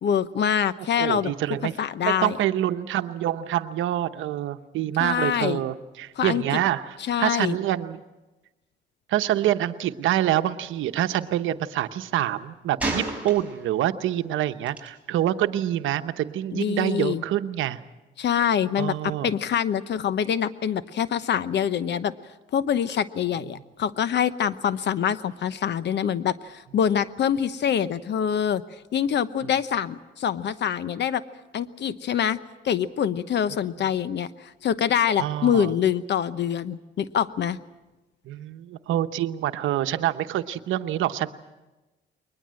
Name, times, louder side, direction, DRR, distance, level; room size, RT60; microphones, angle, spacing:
voice 1, 0.0-1.3 1.8-2.4 5.0-5.6 6.2-6.6 7.1-7.6 16.5-17.2 18.2-18.9 19.2-22.1 22.5-28.6 28.9-31.2 31.5-32.4 32.6-37.6, left 8 dB, 60° left, 14 dB, 1.0 m, -25 dB
voice 2, 1.0-1.7 2.0-8.0 9.1-17.8 18.8-19.3 29.4-29.5 35.2-35.7 38.3-41.3, right 12 dB, 80° right, 10 dB, 1.0 m, -26 dB
Gunshot gunfire, 11.0-11.2 12.8-13.8 14.7-14.9, right 2 dB, 5° right, 5.9 m, -30 dB
22.0 x 20.5 x 7.7 m, 1.1 s
cardioid pair, 90°, 20 cm